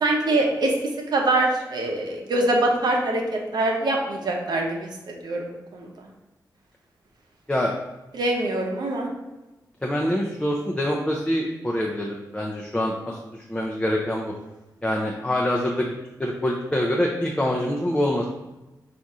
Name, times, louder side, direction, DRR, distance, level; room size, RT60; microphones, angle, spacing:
voice 1, 0.0-0.7 1.1-6.1 8.1-9.1, right 2 dB, 75° right, 0 dB, 0.7 m, -24 dB
voice 2, 9.8-14.3 14.8-15.9 16.2-18.3, left 1 dB, 15° left, -1 dB, 0.5 m, -25 dB
4.1 x 2.5 x 4.8 m, 1.0 s
wide cardioid pair, 95°, 7 cm